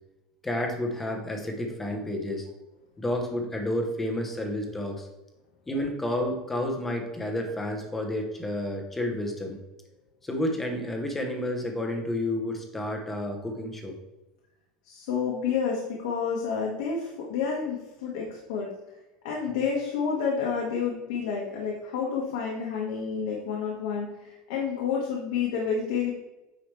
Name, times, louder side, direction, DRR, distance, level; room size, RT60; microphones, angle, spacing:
voice 1, 0.4-2.5 3.0-5.1 5.7-9.6 10.2-14.0, left 1 dB, 5° left, 2 dB, 0.9 m, -30 dB
voice 2, 14.8-18.7 19.2-26.1, left 6 dB, 75° left, -2 dB, 1.6 m, -29 dB
9.5 x 5.0 x 3.3 m, 1.0 s
cardioid pair, 180°, 3 cm